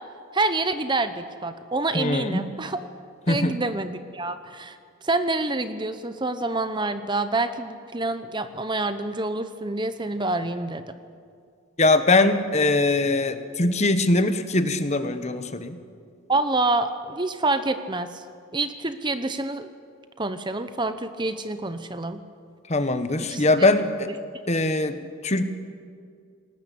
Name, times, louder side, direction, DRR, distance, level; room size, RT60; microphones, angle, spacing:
voice 1, 0.3-2.9 3.3-4.8 5.0-10.9 16.3-18.2 18.5-19.7 20.2-22.2 23.3-23.4, right 2 dB, 20° right, 10 dB, 1.0 m, -27 dB
voice 2, 1.9-2.5 3.3-3.6 11.8-15.8 22.7-24.1 24.5-25.4, left 2 dB, 35° left, 9 dB, 1.4 m, -22 dB
29.0 x 19.5 x 8.7 m, 2.2 s
head